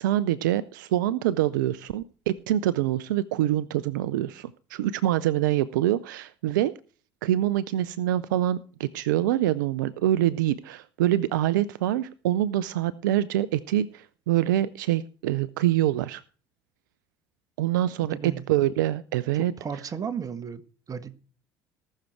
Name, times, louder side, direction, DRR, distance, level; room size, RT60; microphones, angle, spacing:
voice 1, 0.0-6.7 7.2-16.2 17.6-19.5, right 13 dB, 80° right, 0.5 m, -25 dB
voice 2, 18.1-18.4 19.6-20.6 20.9-21.2, right 7 dB, 35° right, 1.5 m, -34 dB
19.0 x 6.6 x 4.6 m
hypercardioid pair, 60°, 10 cm